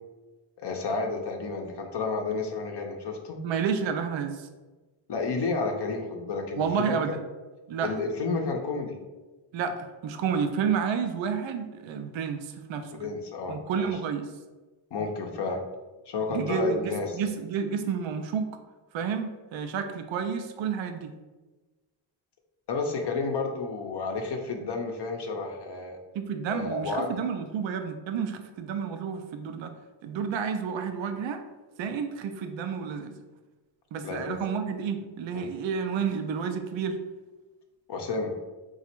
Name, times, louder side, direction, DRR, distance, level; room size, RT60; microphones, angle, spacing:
voice 1, 0.6-3.4 5.1-7.0 7.8-9.0 13.0-14.0 14.9-15.6 16.1-17.2 22.7-26.0 26.5-27.2 34.0-34.4 35.3-35.5 37.9-38.3, left 4 dB, 60° left, 2 dB, 0.6 m, -31 dB
voice 2, 3.4-4.5 6.6-7.2 7.7-7.9 9.5-13.0 13.5-14.3 16.3-18.5 18.9-21.1 26.1-29.7 30.0-31.4 31.8-33.2 33.9-37.0, right 6 dB, 80° right, 7 dB, 0.5 m, -30 dB
3.9 x 2.4 x 4.4 m, 1.2 s
wide cardioid pair, 120°, 45 cm